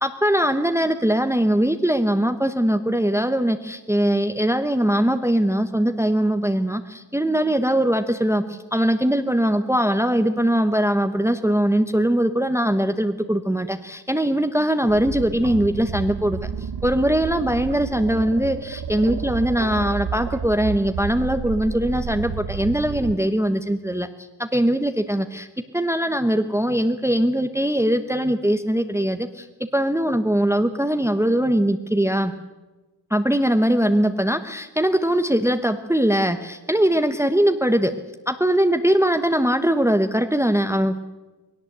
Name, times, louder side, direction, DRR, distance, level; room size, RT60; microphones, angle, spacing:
voice 1, 0.0-25.5 25.7-29.5 29.7-32.3 33.1-37.9 38.3-41.0, right 1 dB, 5° right, 8 dB, 1.0 m, -21 dB
sound 1, 14.9-23.2, right 6 dB, 55° right, 0.9 m, -31 dB
20.5 x 18.0 x 8.1 m, 1.1 s
wide cardioid pair, 80°, 44 cm